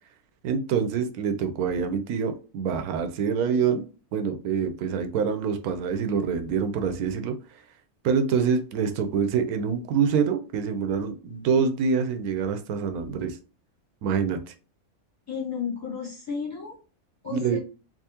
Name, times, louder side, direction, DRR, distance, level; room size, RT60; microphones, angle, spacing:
voice 1, 0.4-3.8 4.1-7.3 8.0-13.4 14.0-14.5 17.3-17.6, right 6 dB, 85° right, 8 dB, 1.1 m, -26 dB
voice 2, 15.3-16.8 17.2-17.6, left 6 dB, 10° left, -5 dB, 1.6 m, -32 dB
3.6 x 2.7 x 2.8 m, 0.35 s
omnidirectional pair, 1.5 m